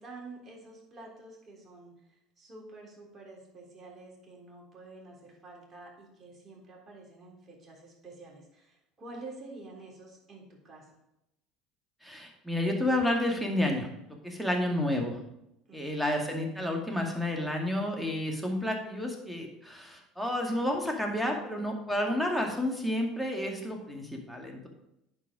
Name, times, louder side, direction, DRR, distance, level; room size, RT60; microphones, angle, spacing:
voice 1, 0.0-11.0 15.7-16.2, right 2 dB, 30° right, -2 dB, 3.5 m, -49 dB
voice 2, 12.0-13.9 14.2-15.2 15.7-24.7, left 1 dB, ahead, 0 dB, 2.1 m, -30 dB
10.0 x 4.7 x 4.9 m, 0.84 s
hypercardioid pair, 75°, 0 cm